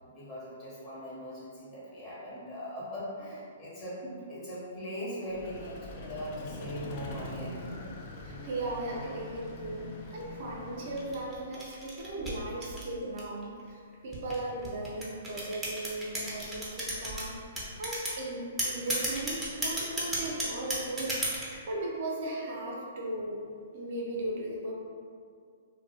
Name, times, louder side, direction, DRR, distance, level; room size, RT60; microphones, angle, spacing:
voice 1, 0.0-7.8, equal, 25° left, -9 dB, 0.9 m, -40 dB
Vehicle, 5.3-11.7, left 2 dB, 45° left, 0.4 m, -43 dB
voice 2, 8.2-21.3 21.7-23.5 23.7-24.7, right 2 dB, 55° right, -3 dB, 0.5 m, -37 dB
sound 1, 11.0-13.4 14.1-17.2 17.6-18.2 18.6-21.6, right 1 dB, 10° right, 0.6 m, -33 dB
2.3 x 2.0 x 2.7 m, 2.2 s
hypercardioid pair, 125°, 0 cm